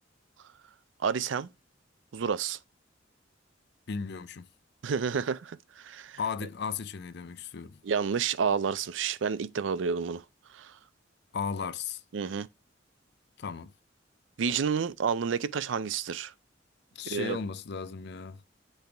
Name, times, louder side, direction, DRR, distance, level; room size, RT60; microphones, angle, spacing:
voice 1, 1.0-1.5 2.1-2.6 4.8-6.2 7.8-10.2 10.5-10.7 12.1-12.5 14.4-16.3 17.1-17.4, right 6 dB, 75° right, 0.4 m, -30 dB
voice 2, 3.9-4.5 6.2-7.8 11.3-12.0 13.4-13.7 16.9-18.4, left 5 dB, 60° left, 0.5 m, -35 dB
8.0 x 3.4 x 3.4 m
head